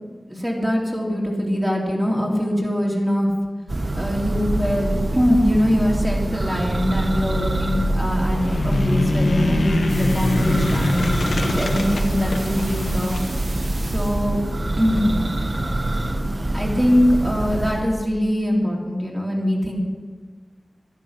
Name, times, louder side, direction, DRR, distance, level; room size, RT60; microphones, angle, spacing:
voice 1, 0.3-3.3 3.9-8.4 8.6-13.2 13.8-14.4 14.8-15.0 16.5-19.8, equal, 15° right, -2 dB, 3.4 m, -22 dB
Church bell, 3.7-18.0, right 1 dB, 35° right, 1.0 m, -25 dB
sound 1, 8.3-13.3, left 2 dB, 85° left, 1.1 m, -24 dB
sound 2, 9.9-14.3, right 2 dB, 70° right, 2.2 m, -38 dB
12.5 x 11.0 x 5.8 m, 1.5 s
wide cardioid pair, 70°, 0 cm